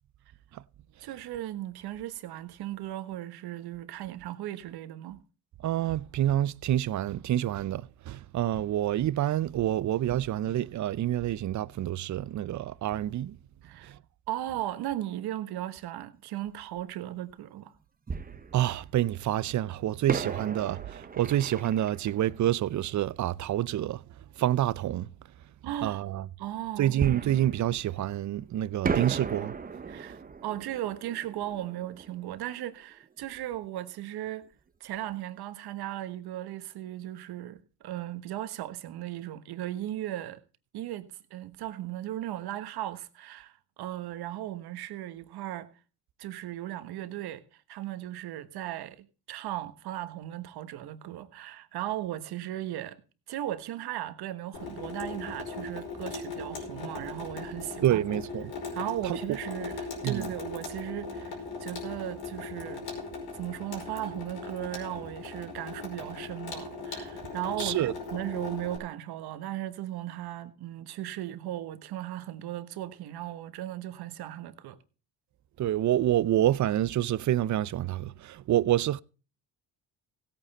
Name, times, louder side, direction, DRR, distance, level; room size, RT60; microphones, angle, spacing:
voice 1, 1.0-5.2 13.6-13.9 14.3-17.7 25.6-26.0 26.4-27.0 29.9-34.5 34.8-40.4 40.7-43.5 43.8-45.7 46.2-53.0 53.3-58.0 58.7-62.8 63.3-74.8, right 13 dB, 70° right, 1.4 m, -37 dB
voice 2, 5.6-13.4 13.8-14.0 18.5-24.0 24.4-25.1 25.8-26.3 26.8-29.5 57.8-58.5 59.0-59.4 60.0-60.3 67.6-67.9 75.6-79.0, right 12 dB, 45° right, 0.6 m, -27 dB
Fireworks, 16.8-16.9 18.1-19.2 20.1-23.5 27.0-28.4 28.8-33.4 33.6-33.7 34.3-34.5, right 5 dB, 20° right, 0.9 m, -37 dB
Water tap faucet / Sink (filling or washing), 54.5-68.8, left 4 dB, 70° left, 5.3 m, -39 dB
16.5 x 9.1 x 4.2 m
supercardioid pair, 80°, 39 cm